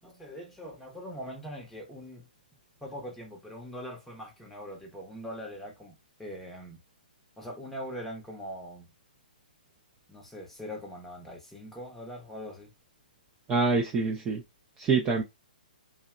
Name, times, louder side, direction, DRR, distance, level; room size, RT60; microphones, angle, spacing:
voice 1, 0.0-2.3 2.8-6.8 7.4-8.9 10.1-12.7, equal, 5° left, 0.8 m, -42 dB
voice 2, 13.5-14.4 14.8-15.2, right 4 dB, 20° right, 0.4 m, -25 dB
2.7 x 2.1 x 2.3 m
figure-of-eight pair, 125°, 5 cm